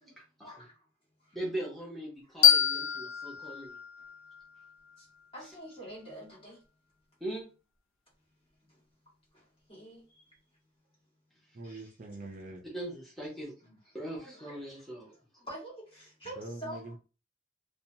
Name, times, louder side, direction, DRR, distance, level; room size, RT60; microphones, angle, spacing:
voice 1, 0.4-0.8 1.2-1.4 5.0-5.1 5.3-6.6 8.7-8.8 9.3-10.3 11.6-11.9 14.1-14.6 15.1-16.9, right 1 dB, 25° left, 1.5 m, -47 dB
voice 2, 1.3-3.8 7.2-7.4 12.7-15.1, right 1 dB, ahead, 0.9 m, -40 dB
sound 1, 2.4-5.2, left 10 dB, 85° left, 0.5 m, -27 dB
voice 3, 11.5-12.6 16.4-17.0, right 2 dB, 40° right, 0.5 m, -43 dB
2.7 x 2.2 x 2.7 m
head